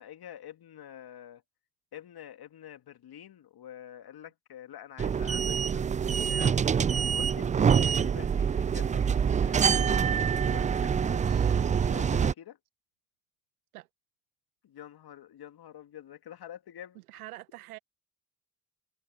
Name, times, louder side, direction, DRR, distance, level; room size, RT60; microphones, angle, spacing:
voice 1, 0.0-1.4 1.9-6.6 7.1-10.0 10.5-11.4 11.8-12.6 14.6-17.0, left 11 dB, 60° left, 2.6 m, -47 dB
sound 1, 5.0-12.3, right 7 dB, 20° right, 0.3 m, -26 dB
voice 2, 11.2-11.7 13.7-13.9 17.1-17.8, right 17 dB, 85° right, 1.1 m, -44 dB
hypercardioid pair, 40°, 43 cm